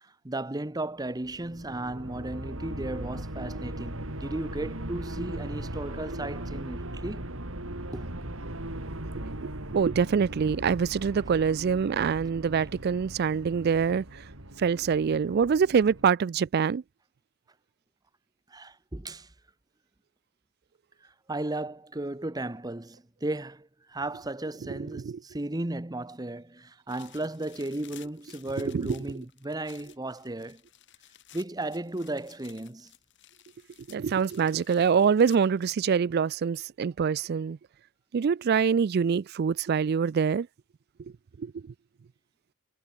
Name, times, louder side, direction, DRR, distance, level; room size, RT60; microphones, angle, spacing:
voice 1, 0.0-7.3 7.9-8.1 9.7-9.8 18.5-19.3 21.0-30.6 31.3-32.9, right 2 dB, 20° right, 0.9 m, -35 dB
sound 1, 1.2-16.1, right 1 dB, 70° right, 3.7 m, -39 dB
voice 2, 9.3-14.2 14.6-16.8 24.8-25.2 28.7-29.0 33.9-37.6 38.1-40.5 41.4-41.7, right 6 dB, 50° right, 0.3 m, -25 dB
sound 2, 26.9-35.6, left 12 dB, 55° left, 6.6 m, -55 dB
head